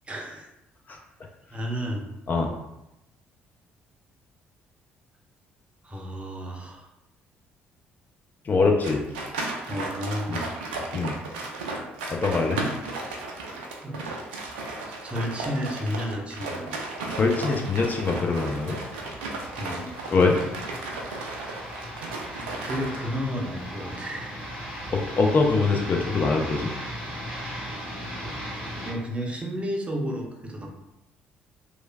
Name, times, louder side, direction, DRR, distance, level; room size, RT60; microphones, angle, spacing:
voice 1, 0.1-0.5 1.5-2.0 5.8-6.9 9.7-11.1 13.1-13.2 13.8-14.2 15.0-16.8 19.6-20.0 22.1-24.4 28.2-28.3 28.8-30.7, equal, 20° right, 0 dB, 0.6 m, -32 dB
voice 2, 8.4-9.0 10.3-10.4 10.9-11.2 12.1-12.6 17.1-18.8 20.1-20.4 24.9-26.7, left 3 dB, 35° left, 1 dB, 0.4 m, -23 dB
sound 1, 8.8-23.0, right 3 dB, 70° right, 0.4 m, -35 dB
sound 2, 16.4-28.9, equal, 85° left, 1.0 m, -38 dB
3.0 x 2.4 x 2.2 m, 0.88 s
figure-of-eight pair, 45°, 5 cm